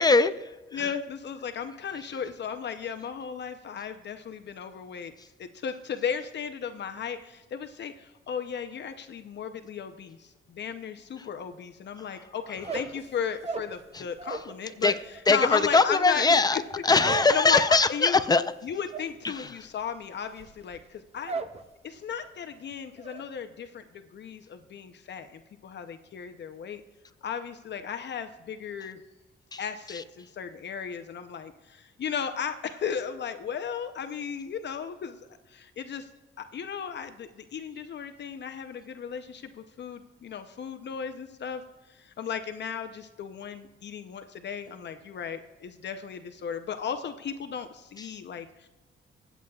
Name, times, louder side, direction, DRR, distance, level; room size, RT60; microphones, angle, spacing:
voice 1, 0.0-0.9 12.0-12.1 13.9-14.0 14.8-14.9 15.3-18.4 19.2-19.5 29.5-29.6 29.9-30.0, left 3 dB, 20° left, 11 dB, 0.5 m, -22 dB
voice 2, 0.7-5.1 5.4-14.9 15.3-16.3 16.5-16.6 17.3-18.2 18.6-21.3 21.8-23.8 24.1-26.8 27.2-29.0 29.6-36.1 36.4-41.6 41.9-48.7, left 7 dB, 55° left, 7 dB, 0.7 m, -35 dB
sound 1, 12.5-14.6 14.8-21.6 21.9-22.4 22.7-23.2, right 4 dB, 30° right, 0.7 m, -38 dB
24.5 x 8.2 x 2.3 m, 1.1 s
cardioid pair, 125°, 21 cm